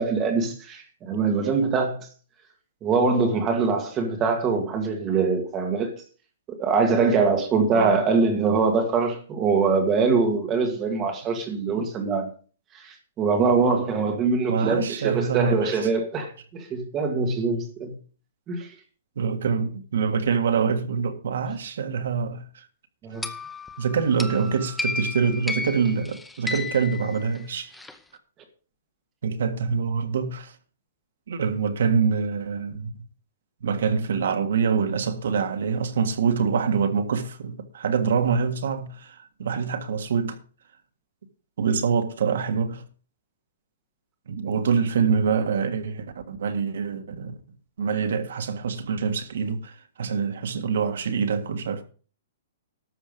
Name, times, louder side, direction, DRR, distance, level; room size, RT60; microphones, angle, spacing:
voice 1, 0.0-2.1 2.8-5.9 6.5-12.3 12.7-17.9 18.5-18.7 23.0-23.3, right 4 dB, 15° right, 2.0 m, -23 dB
voice 2, 14.5-15.9 19.1-22.7 23.8-27.7 29.2-30.5 31.3-33.0 33.6-40.4 41.6-42.8 44.3-47.3 47.8-51.8, right 6 dB, 65° right, 1.7 m, -25 dB
sound 1, 23.2-27.9, left 3 dB, 5° left, 0.6 m, -33 dB
12.5 x 7.3 x 5.3 m
hypercardioid pair, 175°, 0 cm